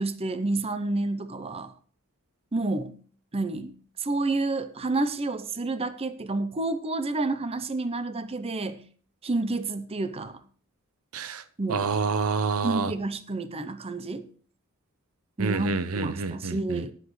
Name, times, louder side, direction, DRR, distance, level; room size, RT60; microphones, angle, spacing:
voice 1, 0.0-1.7 2.5-3.0 3.3-8.8 9.2-10.4 11.6-11.8 12.6-14.3 15.4-16.9, right 2 dB, 25° right, 11 dB, 0.6 m, -29 dB
voice 2, 11.1-12.9 15.4-16.8, right 4 dB, 75° right, 14 dB, 0.7 m, -28 dB
14.5 x 10.5 x 3.1 m, 0.43 s
head